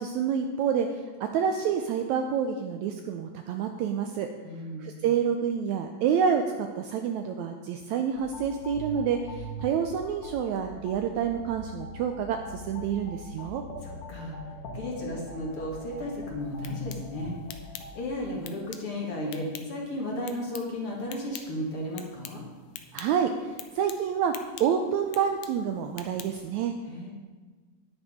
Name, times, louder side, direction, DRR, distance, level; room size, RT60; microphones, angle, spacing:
voice 1, 0.0-4.3 4.8-13.6 22.9-26.7, right 7 dB, 90° right, 5 dB, 1.6 m, -28 dB
voice 2, 4.4-5.0 13.8-17.4 17.9-22.4 26.9-27.1, left 1 dB, 45° left, -2 dB, 2.3 m, -34 dB
sound 1, 8.1-18.1, equal, 65° left, 2.9 m, -42 dB
sound 2, 16.4-26.6, left 10 dB, 90° left, 1.5 m, -47 dB
10.0 x 9.8 x 5.0 m, 1.4 s
omnidirectional pair, 3.9 m